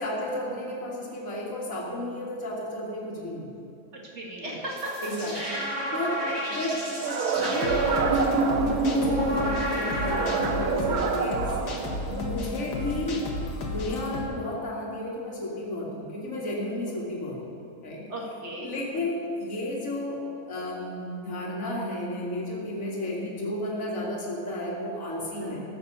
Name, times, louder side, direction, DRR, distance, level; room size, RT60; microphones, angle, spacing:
voice 1, 0.0-3.6 4.4-4.6 5.0-5.3 5.9-11.6 12.1-13.2 13.7-18.1 18.6-25.6, left 1 dB, 55° left, -5 dB, 2.5 m, -33 dB
voice 2, 4.1-6.4 16.8-16.9 18.1-19.0 25.4-25.6, right 1 dB, 45° right, -3 dB, 2.4 m, -37 dB
sound 1, 4.6-10.9, right 1 dB, 20° right, 3.5 m, -29 dB
sound 2, 7.0-9.4 10.0-12.4, right 6 dB, 70° right, 1.2 m, -29 dB
sound 3, 7.3-14.2, left 2 dB, 80° left, 2.0 m, -33 dB
13.5 x 7.9 x 6.7 m, 2.7 s
omnidirectional pair, 1.7 m